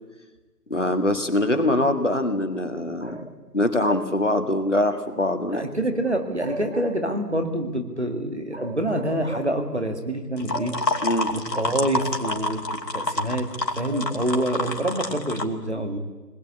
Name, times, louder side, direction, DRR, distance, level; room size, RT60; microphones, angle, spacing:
voice 1, 0.7-3.3 3.5-5.7 11.0-11.3, left 1 dB, 45° left, 6 dB, 1.9 m, -23 dB
voice 2, 5.5-12.6 12.9-13.5 13.7-16.0, right 1 dB, 45° right, 5 dB, 2.3 m, -27 dB
sound 1, 10.4-15.5, left 2 dB, 85° left, 2.6 m, -28 dB
22.0 x 20.0 x 8.5 m, 1.2 s
figure-of-eight pair, 180°, 49 cm